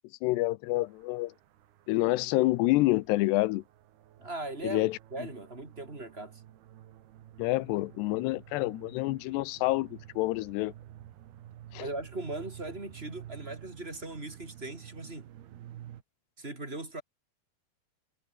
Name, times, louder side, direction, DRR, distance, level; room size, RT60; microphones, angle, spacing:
voice 1, 0.2-1.3 1.9-3.6 4.6-5.0 7.4-10.7 11.7-11.9, left 19 dB, 90° left, 2.9 m, -28 dB
sound 1, 0.7-16.0, right 12 dB, 75° right, 3.6 m, -51 dB
voice 2, 4.2-6.4 11.8-15.3 16.4-17.0, right 2 dB, 15° right, 3.4 m, -39 dB
omnidirectional pair, 4.7 m